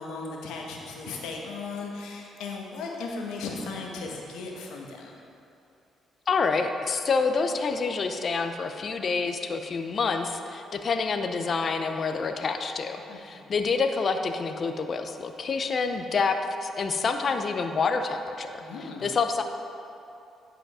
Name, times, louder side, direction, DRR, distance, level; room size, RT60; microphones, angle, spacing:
voice 1, 0.0-5.2 13.1-13.5 18.6-19.1, left 3 dB, 90° left, -1 dB, 1.2 m, -37 dB
voice 2, 6.3-18.6 19.0-19.4, left 4 dB, 45° left, 6 dB, 0.6 m, -27 dB
10.0 x 5.1 x 4.9 m, 2.7 s
cardioid pair, 90°, 0 cm